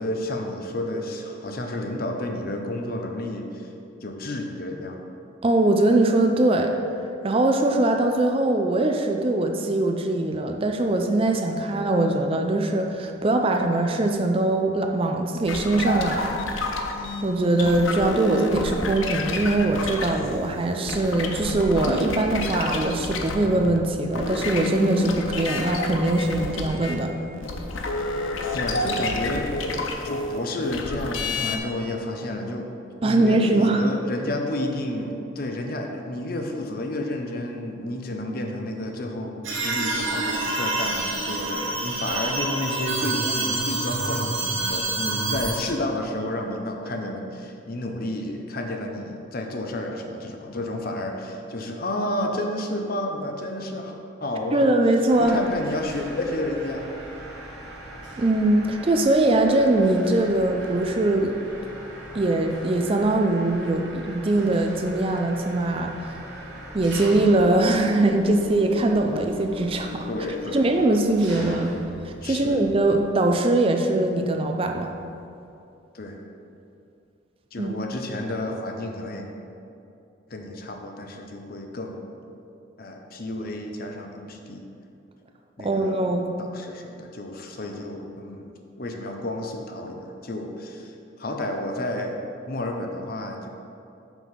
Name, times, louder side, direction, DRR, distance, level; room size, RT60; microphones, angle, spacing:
voice 1, 0.0-3.7 4.0-5.0 28.5-29.6 30.0-32.7 33.0-53.9 54.2-54.7 55.2-56.9 70.1-71.0 71.3-71.6 72.2-72.6 75.9-76.3 77.5-79.3 80.3-82.0 82.8-84.7 85.6-86.1 86.4-88.5 88.8-92.2 92.5-93.5, left 1 dB, 45° left, 3 dB, 0.7 m, -31 dB
voice 2, 5.4-6.7 7.2-16.3 17.2-27.1 33.0-33.8 54.5-55.4 58.2-61.4 62.1-66.2 66.7-70.1 70.5-71.7 72.0-74.9 77.6-77.7 85.6-86.3, right 2 dB, 25° right, 4 dB, 0.4 m, -22 dB
sound 1, 15.5-23.8 24.0-31.6, left 2 dB, 80° left, 0.7 m, -29 dB
sound 2, 39.4-45.6, right 2 dB, 80° right, 1.3 m, -27 dB
Mechanisms, 55.1-73.1, equal, 65° right, 1.5 m, -40 dB
6.0 x 5.4 x 5.8 m, 2.7 s
head